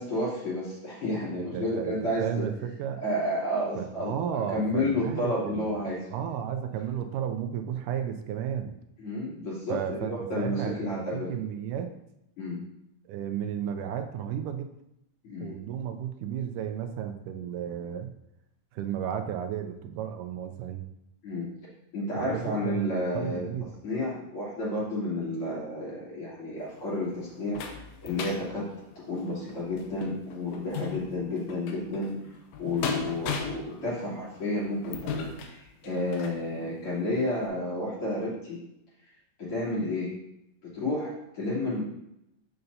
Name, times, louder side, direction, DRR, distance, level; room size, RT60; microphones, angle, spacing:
voice 1, 0.0-2.5 3.0-6.1 9.0-11.3 12.4-12.6 15.2-15.6 21.2-21.5 21.9-23.5 23.8-27.6 28.0-28.7 29.0-32.2 32.6-38.6 39.4-40.1 40.6-41.8, left 1 dB, 45° left, -9 dB, 3.6 m, -31 dB
voice 2, 1.3-3.0 3.8-8.8 9.7-11.9 13.1-14.7 15.4-18.1 18.7-20.8 22.2-23.7, right 9 dB, 85° right, 7 dB, 2.1 m, -33 dB
sound 1, 26.6-36.4 37.0-37.1 37.5-37.6, left 5 dB, 80° left, 2.3 m, -38 dB
7.7 x 6.8 x 2.7 m, 0.83 s
omnidirectional pair, 3.6 m